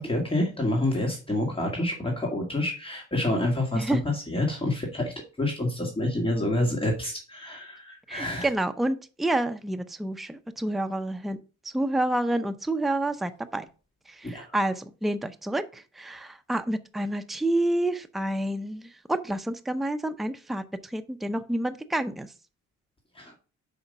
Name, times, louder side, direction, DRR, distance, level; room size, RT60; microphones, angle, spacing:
voice 1, 0.0-8.5 14.2-14.5 23.1-23.3, left 1 dB, 20° left, -1 dB, 2.1 m, -28 dB
voice 2, 3.7-4.0 8.1-11.4 11.6-13.7 14.1-22.3, right 1 dB, ahead, 9 dB, 0.6 m, -29 dB
5.7 x 5.0 x 5.4 m, 0.35 s
cardioid pair, 90°, 30 cm